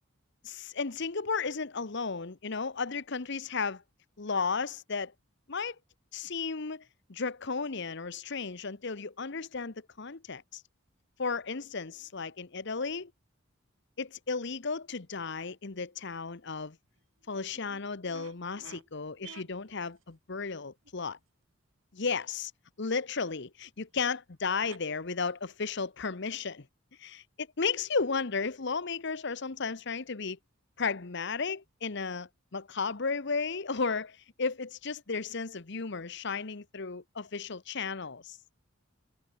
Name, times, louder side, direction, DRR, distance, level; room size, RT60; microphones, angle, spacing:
voice 1, 0.4-3.8 4.2-5.1 5.5-5.8 6.1-6.8 7.1-10.6 11.2-13.1 14.0-16.8 17.3-21.2 21.9-22.5 22.8-26.7 27.0-30.4 30.8-38.4, left 4 dB, 60° left, 1.1 m, -34 dB
sound 1, 16.8-16.9 17.2-18.9 19.2-20.1 20.8-20.9 23.6-23.7 23.9-24.0 24.6-24.8 25.3-25.9, right 5 dB, 70° right, 2.5 m, -52 dB
head